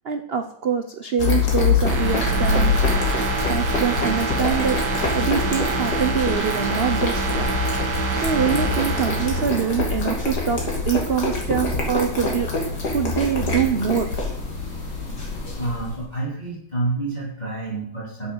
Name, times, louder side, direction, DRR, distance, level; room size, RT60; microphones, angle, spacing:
voice 1, 0.0-2.8 3.5-4.8 5.1-7.5 8.2-12.5 12.9-14.1, right 7 dB, 80° right, 8 dB, 0.5 m, -24 dB
sound 1, 1.2-16.0, left 3 dB, 55° left, 3.0 m, -25 dB
sound 2, 1.9-10.5 10.9-11.0, right 2 dB, 60° right, 2.2 m, -26 dB
voice 2, 15.6-18.3, right 2 dB, 20° left, -5 dB, 3.7 m, -28 dB
9.6 x 7.2 x 7.3 m, 0.69 s
omnidirectional pair, 2.1 m